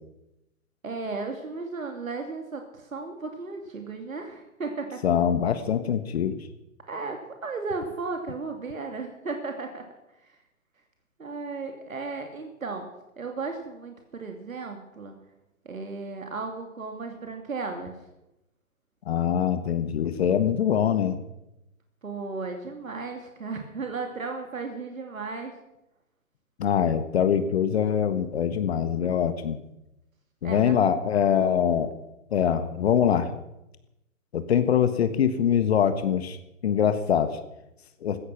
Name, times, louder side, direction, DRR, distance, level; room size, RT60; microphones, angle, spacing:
voice 1, 0.8-5.0 6.9-9.8 10.2-10.4 11.2-12.9 13.2-15.2 15.6-17.9 22.0-25.5 30.4-30.8, right 4 dB, 80° right, 4 dB, 2.9 m, -35 dB
voice 2, 5.0-6.4 19.1-21.2 26.6-29.6 30.4-31.9 32.3-33.3 34.3-36.4 36.6-37.3 38.0-38.2, left 8 dB, 50° left, 10 dB, 1.5 m, -23 dB
16.0 x 15.0 x 6.0 m, 0.90 s
figure-of-eight pair, 130°, 41 cm